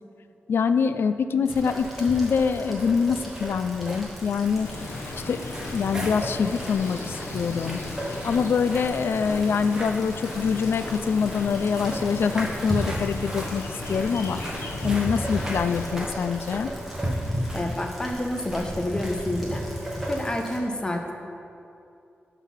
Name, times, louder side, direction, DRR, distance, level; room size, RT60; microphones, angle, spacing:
voice 1, 0.5-4.7 5.3-5.4 5.7-7.8 8.2-13.6 13.9-14.4 14.8-16.7, left 6 dB, 65° left, 11 dB, 0.4 m, -24 dB
Rain, 1.4-20.6, equal, ahead, 1.6 m, -35 dB
sound 1, 1.5-19.5, equal, 15° right, 1.1 m, -40 dB
sound 2, 4.6-15.9, left 2 dB, 90° left, 1.0 m, -37 dB
voice 2, 17.5-19.7 20.1-21.1, left 1 dB, 20° left, 3 dB, 0.6 m, -28 dB
12.0 x 4.0 x 5.6 m, 2.7 s
wide cardioid pair, 155°, 4 cm